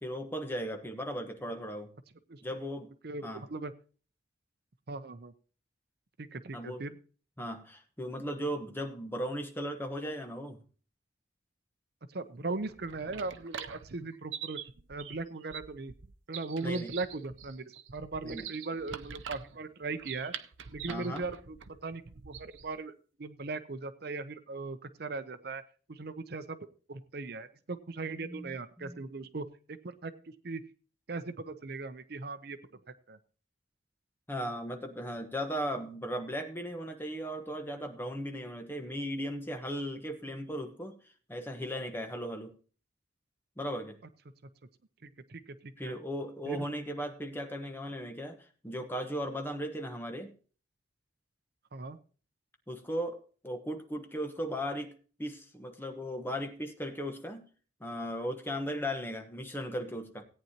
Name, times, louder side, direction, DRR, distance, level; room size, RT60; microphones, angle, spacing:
voice 1, 0.0-1.9 2.4-2.9 3.2-3.5 6.5-6.9 7.4-10.6 16.6-16.9 18.2-18.5 20.9-21.3 28.2-29.0 34.3-41.0 41.3-42.5 43.6-44.0 45.8-50.3 52.7-54.9 55.2-57.5 57.8-60.2, equal, 10° left, 5 dB, 1.2 m, -37 dB
voice 2, 3.0-3.7 4.9-5.3 6.2-7.0 12.1-14.6 14.9-15.9 16.3-20.3 20.7-21.6 21.8-22.9 23.2-25.6 25.9-26.6 26.9-29.5 29.8-30.1 30.4-30.6 31.1-32.6 33.1-33.2 45.0-46.0 46.5-46.6 51.7-52.0, right 3 dB, 55° right, 11 dB, 0.7 m, -38 dB
sound 1, 12.5-22.8, right 8 dB, 90° right, 0.7 m, -45 dB
17.0 x 9.3 x 2.9 m, 0.39 s
head